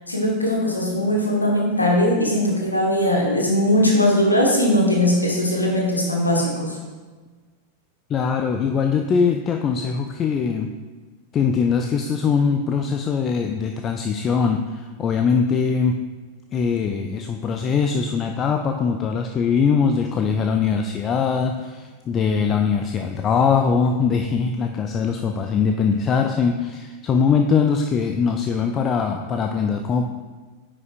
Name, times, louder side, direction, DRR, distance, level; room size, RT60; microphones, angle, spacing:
voice 1, 0.1-6.8, left 1 dB, 85° left, -1 dB, 1.3 m, -20 dB
voice 2, 8.1-10.7 11.3-16.0 16.5-30.1, left 6 dB, 30° left, 5 dB, 0.4 m, -21 dB
9.3 x 5.3 x 2.5 m, 1.4 s
figure-of-eight pair, 90°, 0 cm